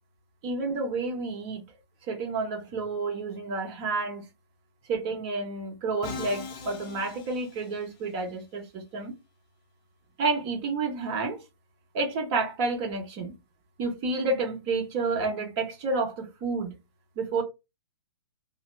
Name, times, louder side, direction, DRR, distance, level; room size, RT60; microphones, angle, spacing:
voice 1, 0.4-1.6 2.1-4.3 4.9-9.1 10.2-11.4 11.9-13.3 13.8-16.8 17.2-17.4, right 3 dB, 30° right, 1.1 m, -30 dB
Musical instrument, 6.0-8.1, left 5 dB, 30° left, 0.6 m, -40 dB
2.7 x 2.0 x 3.3 m
figure-of-eight pair, 120°, 14 cm